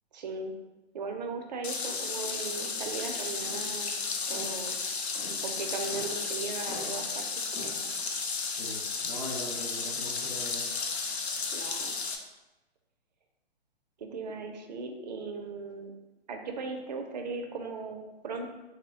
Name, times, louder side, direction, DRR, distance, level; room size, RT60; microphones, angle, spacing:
voice 1, 0.1-0.5 0.9-3.9 4.3-4.8 5.4-7.4 11.5-12.0 14.0-15.9 16.3-18.5, right 4 dB, 45° right, 4 dB, 0.4 m, -38 dB
sound 1, 1.6-12.2, left 4 dB, 80° left, 0.5 m, -33 dB
sound 2, 1.8-8.2, equal, 35° left, 1.0 m, -46 dB
voice 2, 8.5-10.7, equal, 20° left, -9 dB, 0.6 m, -41 dB
3.1 x 2.1 x 3.4 m, 1.1 s
hypercardioid pair, 135°, 32 cm